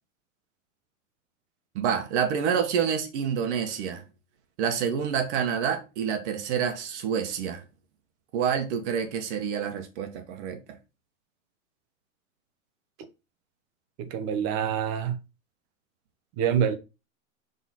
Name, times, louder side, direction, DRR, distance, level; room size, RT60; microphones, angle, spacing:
voice 1, 1.7-4.0 4.6-7.6 8.3-10.6, right 7 dB, 60° right, 1.6 m, -28 dB
voice 2, 14.0-15.2 16.4-16.8, right 8 dB, 40° right, 1.2 m, -26 dB
6.1 x 4.0 x 4.2 m
hypercardioid pair, 135°, 40 cm